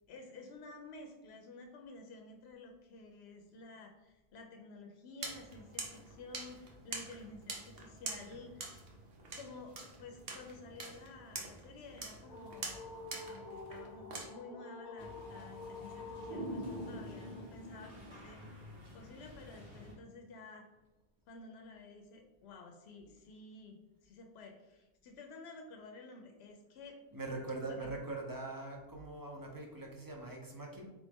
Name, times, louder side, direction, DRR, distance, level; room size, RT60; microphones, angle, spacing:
voice 1, 0.1-8.7 9.4-18.4 18.9-20.7 21.3-27.0 27.7-27.9, left 3 dB, 90° left, 4 dB, 0.8 m, -52 dB
sound 1, 5.2-14.3, right 3 dB, 70° right, 1.0 m, -46 dB
sound 2, 11.9-18.0, left 2 dB, 55° left, 0.5 m, -49 dB
sound 3, 15.0-19.9, equal, 50° right, 1.3 m, -46 dB
voice 2, 27.1-30.9, right 2 dB, 25° right, 0 dB, 0.6 m, -42 dB
4.0 x 3.2 x 3.5 m, 1.0 s
omnidirectional pair, 1.0 m